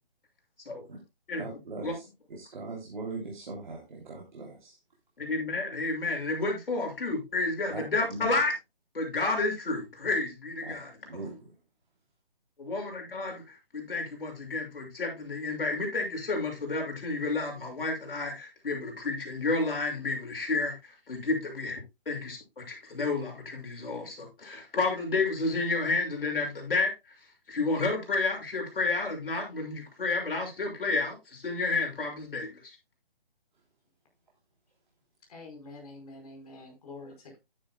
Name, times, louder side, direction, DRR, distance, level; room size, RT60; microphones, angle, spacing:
voice 1, 1.3-4.8 7.7-7.8 8.1-8.3 10.6-10.7 11.1-11.5, right 3 dB, 55° right, 3.1 m, -40 dB
voice 2, 5.2-8.5 8.9-10.9 12.6-26.9 27.5-32.7, left 3 dB, 65° left, 6.3 m, -31 dB
voice 3, 35.3-37.4, left 2 dB, 40° left, 4.8 m, -46 dB
11.5 x 10.5 x 2.2 m
hypercardioid pair, 170°, 29 cm